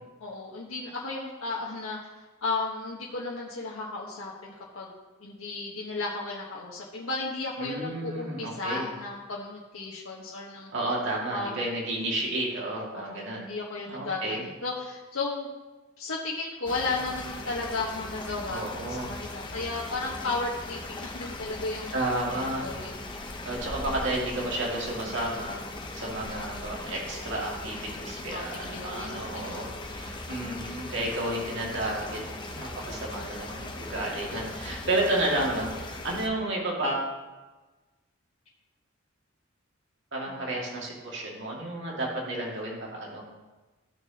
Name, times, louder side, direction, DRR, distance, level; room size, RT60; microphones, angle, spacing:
voice 1, 0.2-2.0 2.4-4.9 5.2-10.7 11.3-11.6 12.9-15.5 16.0-21.9 22.4-23.0 28.3-29.7 40.3-40.5, left 3 dB, 80° left, -4 dB, 1.3 m, -34 dB
voice 2, 7.6-8.9 10.7-13.4 13.9-14.4 18.5-19.1 21.9-22.8 23.4-25.6 25.9-32.2 32.5-37.1 40.1-43.2, right 1 dB, 60° right, -3 dB, 2.2 m, -31 dB
sound 1, 16.7-36.3, left 2 dB, 25° left, 0.8 m, -39 dB
15.5 x 6.3 x 2.9 m, 1.2 s
head